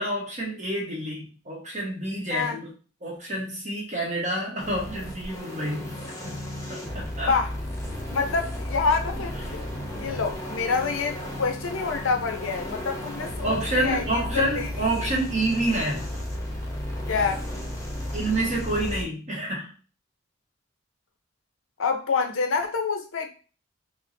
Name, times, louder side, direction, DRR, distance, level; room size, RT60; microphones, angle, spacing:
voice 1, 0.0-2.7 3.0-6.4 6.7-7.3 13.4-16.1 18.1-19.7, right 1 dB, 35° right, 1.1 m, -28 dB
sound 1, 4.6-19.0, left 1 dB, 15° left, 0.8 m, -34 dB
voice 2, 8.1-14.7 17.1-17.4 21.8-23.3, left 4 dB, 90° left, 0.6 m, -27 dB
4.4 x 2.1 x 2.6 m
head